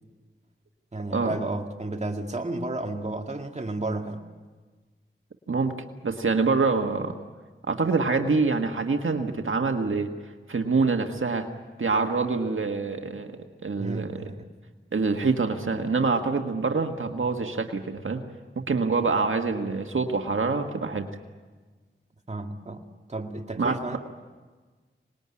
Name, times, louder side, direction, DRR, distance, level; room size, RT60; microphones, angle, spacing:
voice 1, 0.9-4.2 13.8-14.4 22.3-24.0, right 2 dB, 35° right, 3 dB, 2.1 m, -32 dB
voice 2, 6.0-7.1 7.7-10.1 10.5-11.5 11.8-13.4 13.6-14.3 14.9-18.2 18.6-21.1 23.6-24.0, right 4 dB, 75° right, 4 dB, 1.7 m, -25 dB
25.5 x 20.0 x 9.8 m, 1.4 s
wide cardioid pair, 60°, 21 cm